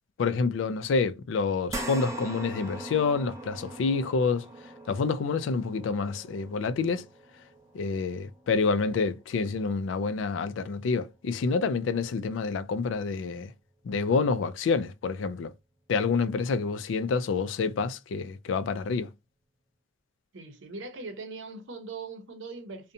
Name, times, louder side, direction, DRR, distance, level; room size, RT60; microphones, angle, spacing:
voice 1, 0.2-4.5 4.9-7.0 7.7-13.5 13.8-15.5 15.9-19.1, left 4 dB, 75° left, 0.3 m, -28 dB
sound 1, 1.7-10.3 10.7-10.9 12.3-12.4, right 1 dB, 15° right, 0.4 m, -42 dB
voice 2, 20.3-22.9, right 3 dB, 75° right, 0.7 m, -40 dB
2.7 x 2.1 x 2.5 m
head